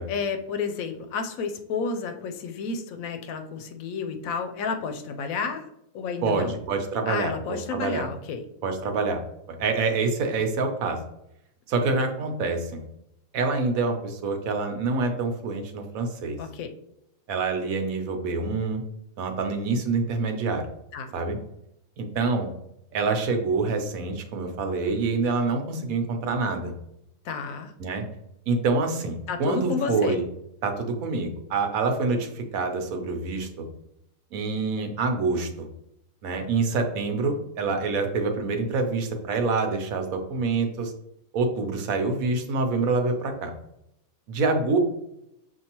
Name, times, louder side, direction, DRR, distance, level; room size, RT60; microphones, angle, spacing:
voice 1, 0.1-5.7 5.9-6.6 7.1-8.4 16.4-16.7 20.9-21.1 27.2-27.7 29.3-30.2, left 5 dB, 75° left, 6 dB, 1.0 m, -31 dB
voice 2, 6.2-8.1 8.6-9.2 9.5-11.0 11.7-12.8 13.3-16.4 17.3-18.8 19.2-20.7 21.1-21.4 22.0-22.5 22.9-26.7 27.8-28.0 28.5-30.2 30.6-33.6 34.3-35.7 36.2-40.9 41.3-43.5 44.3-44.8, right 3 dB, 75° right, 5 dB, 1.1 m, -26 dB
6.4 x 2.6 x 2.9 m, 0.80 s
omnidirectional pair, 1.5 m